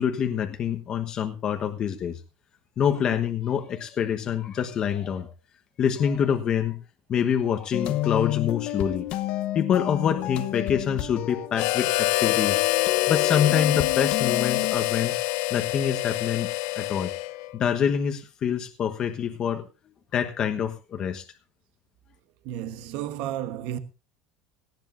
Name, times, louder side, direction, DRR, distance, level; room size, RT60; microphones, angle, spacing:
voice 1, 0.0-2.2 2.8-5.3 5.8-6.8 7.1-9.1 9.5-12.6 13.1-16.5 16.7-17.1 17.5-19.7 20.1-21.2, left 8 dB, 30° left, 1.2 m, -26 dB
sound 1, 7.7-14.8, left 14 dB, 50° left, 1.0 m, -30 dB
Harmonica, 11.5-17.6, left 20 dB, 70° left, 0.6 m, -26 dB
voice 2, 22.4-23.8, right 11 dB, 60° right, 1.2 m, -32 dB
18.5 x 15.0 x 2.6 m
cardioid pair, 155°, 2 cm